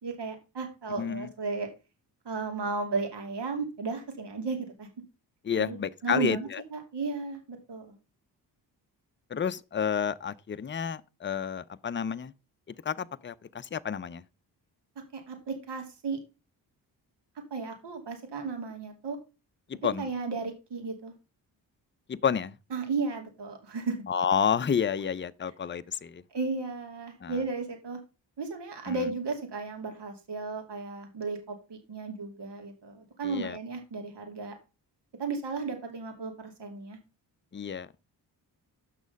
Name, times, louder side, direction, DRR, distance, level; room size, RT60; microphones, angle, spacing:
voice 1, 0.0-1.7 2.2-4.9 5.6-5.8 6.0-8.0 15.1-16.2 17.5-19.2 20.0-21.1 22.7-24.0 26.3-28.0 28.4-34.6 35.2-37.0, right 4 dB, 65° right, 2.7 m, -34 dB
voice 2, 1.0-1.3 5.4-6.6 9.3-12.3 12.7-14.2 19.7-20.1 22.1-22.5 24.1-26.2 27.2-27.4 28.9-29.1 33.2-33.6 37.5-37.9, left 7 dB, 25° left, 0.6 m, -30 dB
8.3 x 6.2 x 5.2 m
cardioid pair, 55°, 45 cm